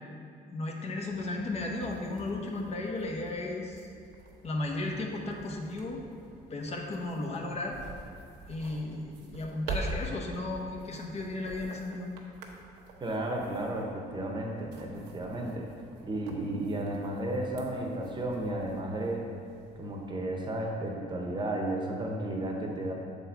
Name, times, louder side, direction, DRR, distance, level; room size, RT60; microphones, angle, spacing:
voice 1, 0.5-3.8 4.4-6.0 6.5-7.8 8.5-12.1, left 2 dB, 40° left, 0 dB, 0.9 m, -35 dB
sound 1, 1.0-20.1, right 2 dB, 85° right, 0.9 m, -46 dB
voice 2, 13.0-15.7 16.0-19.2 19.8-22.9, right 1 dB, 25° right, 0 dB, 0.9 m, -33 dB
6.8 x 4.2 x 4.5 m, 2.4 s
cardioid pair, 110°, 17 cm